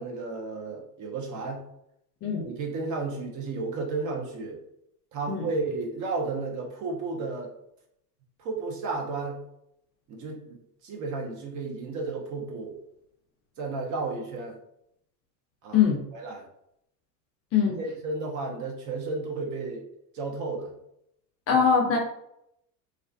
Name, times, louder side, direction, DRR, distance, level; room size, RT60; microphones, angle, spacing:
voice 1, 0.0-1.6 2.4-4.6 5.1-7.5 8.4-9.4 10.1-10.6 10.8-12.8 13.6-14.6 15.6-15.8 16.1-16.5 17.8-19.9 20.1-20.7 21.5-21.6, right 3 dB, 35° right, 1 dB, 0.7 m, -33 dB
voice 2, 2.2-2.5 5.3-5.5 15.7-16.0 17.5-17.8 21.5-22.0, left 7 dB, 30° left, -1 dB, 0.5 m, -22 dB
2.4 x 2.4 x 2.3 m, 0.77 s
hypercardioid pair, 85°, 50 cm